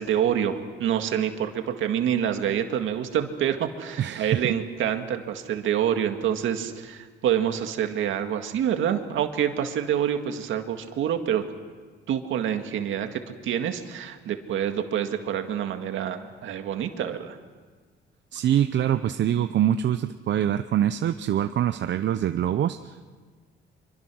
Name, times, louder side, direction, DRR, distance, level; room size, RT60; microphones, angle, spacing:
voice 1, 0.0-11.4 12.1-17.4, right 9 dB, 80° right, 6 dB, 2.0 m, -27 dB
voice 2, 4.0-4.5 18.3-23.1, right 10 dB, 65° right, 10 dB, 0.7 m, -24 dB
25.5 x 24.0 x 6.3 m, 1.5 s
cardioid pair, 90°, 20 cm